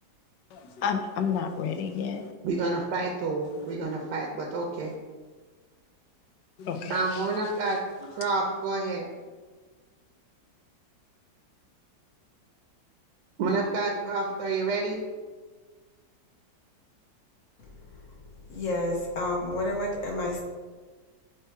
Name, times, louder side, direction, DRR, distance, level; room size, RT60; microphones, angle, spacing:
voice 1, 0.5-2.3 3.5-3.8 6.6-7.3, left 6 dB, 80° left, 6 dB, 1.3 m, -31 dB
voice 2, 2.4-4.9 6.9-7.8 8.1-9.1 13.4-15.0, right 3 dB, 70° right, 1 dB, 1.3 m, -29 dB
voice 3, 18.5-20.4, left 1 dB, 50° left, 0 dB, 1.3 m, -29 dB
8.1 x 3.1 x 4.5 m, 1.4 s
omnidirectional pair, 1.9 m